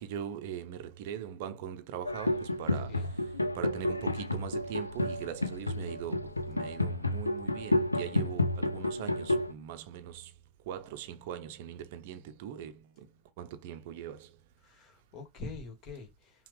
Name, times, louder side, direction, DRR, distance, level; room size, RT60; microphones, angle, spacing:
voice 1, 0.0-10.4 10.6-14.4, right 9 dB, 50° right, 0.7 m, -41 dB
sound 1, 2.1-9.5, left 1 dB, 85° left, 0.5 m, -31 dB
voice 2, 14.6-16.5, left 3 dB, 35° left, 1.9 m, -45 dB
5.6 x 2.4 x 3.4 m
figure-of-eight pair, 90°, 0 cm